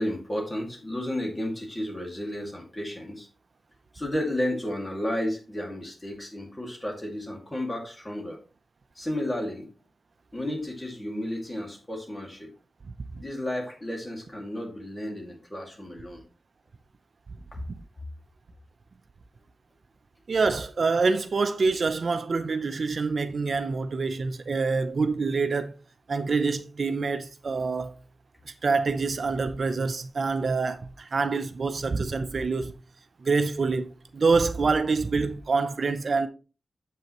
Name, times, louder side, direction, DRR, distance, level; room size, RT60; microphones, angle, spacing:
voice 1, 0.0-3.3 3.9-8.4 9.0-9.7 10.3-12.5 13.2-16.2, left 1 dB, 20° left, 2.2 m, -32 dB
voice 2, 20.3-25.7 26.1-27.9 28.6-32.7 33.2-36.3, right 4 dB, 60° right, 0.5 m, -26 dB
7.7 x 5.6 x 3.0 m
wide cardioid pair, 75°, 0 cm